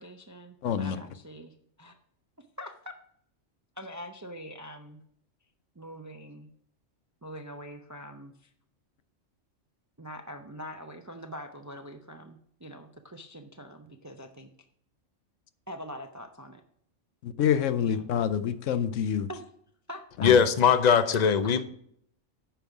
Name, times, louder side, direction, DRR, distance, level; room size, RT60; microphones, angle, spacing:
voice 1, 0.0-1.9 2.4-2.7 3.8-5.0 5.8-6.5 7.2-8.5 10.0-14.5 15.7-16.6 17.8-18.1 19.3-19.4 19.9-20.3, equal, 30° right, 0.3 m, -43 dB
voice 2, 0.6-1.0 17.2-19.3 20.2-20.4, left 8 dB, 85° left, 1.0 m, -27 dB
voice 3, 20.2-21.6, left 7 dB, 45° left, 0.6 m, -20 dB
9.2 x 5.4 x 4.7 m
omnidirectional pair, 1.3 m